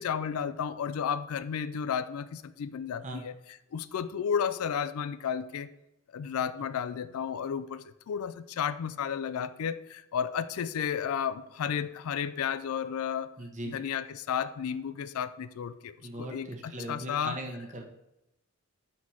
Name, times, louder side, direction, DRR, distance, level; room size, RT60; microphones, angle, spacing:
voice 1, 0.0-3.3 3.7-5.7 6.1-13.3 13.7-15.9 16.2-17.4, left 7 dB, 80° left, 14 dB, 0.4 m, -32 dB
voice 2, 13.4-13.8 16.0-17.8, right 1 dB, 35° right, 3 dB, 1.0 m, -39 dB
4.6 x 4.3 x 5.5 m, 0.89 s
head